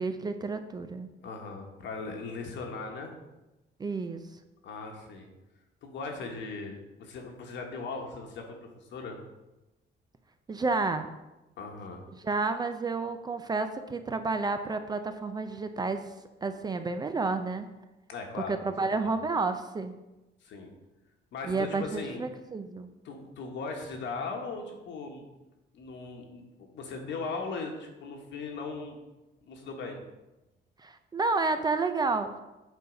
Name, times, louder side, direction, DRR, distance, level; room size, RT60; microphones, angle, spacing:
voice 1, 0.0-1.1 3.8-4.2 10.5-11.1 12.1-16.1 16.4-17.7 18.5-19.9 21.4-22.9 30.8-32.3, right 3 dB, 20° right, 8 dB, 0.4 m, -30 dB
voice 2, 1.2-3.1 4.6-5.3 5.8-9.2 11.6-12.0 18.1-18.5 19.0-19.1 20.4-20.7 21.3-22.2 23.0-25.2 25.7-26.4 26.7-29.0 29.5-30.0, left 4 dB, 75° left, 2 dB, 1.5 m, -38 dB
8.2 x 4.0 x 5.3 m, 1.0 s
cardioid pair, 165°, 19 cm